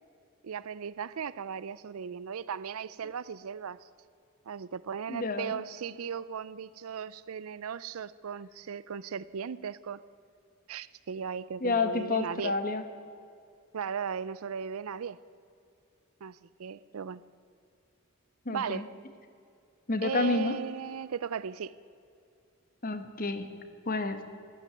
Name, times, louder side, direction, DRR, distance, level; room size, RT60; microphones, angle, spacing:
voice 1, 0.4-3.8 4.5-10.0 10.7-12.5 13.7-15.2 16.2-17.2 18.5-18.9 20.0-21.7, right 7 dB, 80° right, 18 dB, 0.5 m, -37 dB
voice 2, 5.1-5.6 11.6-12.8 18.4-18.8 19.9-20.6 22.8-23.5 23.9-24.2, left 3 dB, 40° left, 10 dB, 1.1 m, -29 dB
13.0 x 11.5 x 9.4 m, 2.5 s
head